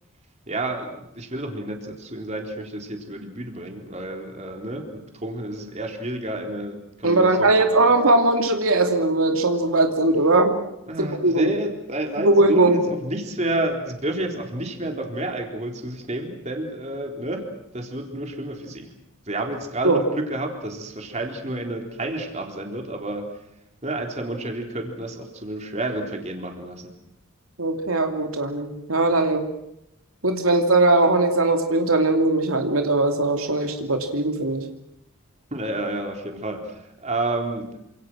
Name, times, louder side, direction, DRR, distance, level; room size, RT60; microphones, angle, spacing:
voice 1, 0.5-7.9 10.9-17.5 17.7-18.9 19.3-23.3 23.8-26.9 35.5-37.9, right 1 dB, 30° right, 3 dB, 4.0 m, -30 dB
voice 2, 7.0-10.5 11.0-11.5 12.2-12.8 19.8-20.0 27.6-29.4 30.2-34.6, right 2 dB, 85° right, 4 dB, 2.8 m, -20 dB
28.0 x 27.0 x 6.3 m, 0.80 s
head